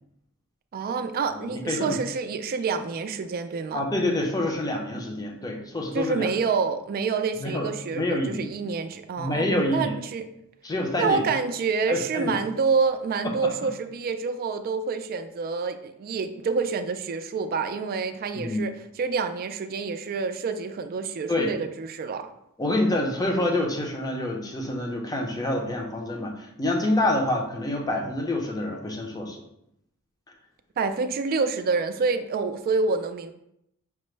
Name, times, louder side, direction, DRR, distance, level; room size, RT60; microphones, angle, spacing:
voice 1, 0.7-3.8 5.9-10.3 11.0-18.7 19.0-22.3 30.8-33.3, right 4 dB, 45° right, 9 dB, 0.3 m, -27 dB
voice 2, 1.3-2.0 3.7-6.3 7.4-7.7 7.9-8.4 9.2-9.9 10.6-11.2 11.9-12.4 13.4-13.5 18.3-18.6 21.3-21.5 22.6-29.4, left 1 dB, 15° left, 1 dB, 0.6 m, -27 dB
5.9 x 2.1 x 3.2 m, 0.78 s
head